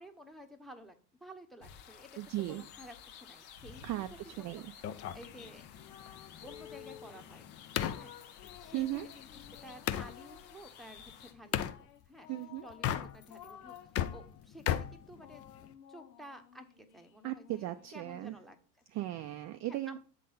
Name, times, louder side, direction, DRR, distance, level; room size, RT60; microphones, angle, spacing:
voice 1, 0.0-2.1 2.5-4.0 4.4-4.7 5.0-5.6 6.4-7.5 7.9-8.2 8.6-9.3 9.6-12.3 12.6-15.4 15.9-18.6 19.7-20.0, equal, ahead, 4 dB, 1.0 m, -52 dB
sound 1, 1.6-11.3, left 8 dB, 60° left, 1.2 m, -54 dB
voice 2, 2.2-2.6 3.8-4.7 8.7-9.1 12.3-12.7 17.2-18.4 18.9-20.0, right 14 dB, 35° right, 7 dB, 0.5 m, -37 dB
sound 2, 4.8-10.1 11.5-11.8 12.7-13.5 13.8-15.7, left 10 dB, 30° left, 0.5 m, -37 dB
sound 3, 5.8-7.2 7.8-10.7 11.5-14.4 14.9-18.6, left 10 dB, 80° left, 0.9 m, -55 dB
7.4 x 3.9 x 5.5 m, 0.38 s
hypercardioid pair, 85°, 50 cm